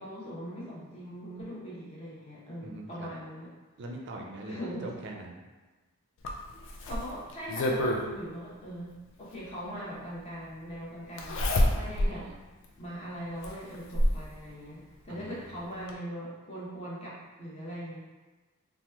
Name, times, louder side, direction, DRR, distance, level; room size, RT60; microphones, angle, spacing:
voice 1, 0.0-3.5 4.4-4.9 6.8-12.2 12.8-18.0, equal, 30° left, -7 dB, 0.8 m, -41 dB
voice 2, 2.6-3.1 3.8-5.5 11.6-12.4 15.1-15.6, right 2 dB, 55° right, 1 dB, 0.4 m, -43 dB
Zipper (clothing), 6.2-8.0 9.5-9.6 11.2-12.2 12.6-12.7 13.4-14.3 15.5-15.6 15.9-16.0, left 1 dB, 60° left, 0.4 m, -27 dB
2.9 x 2.1 x 3.4 m, 1.2 s
head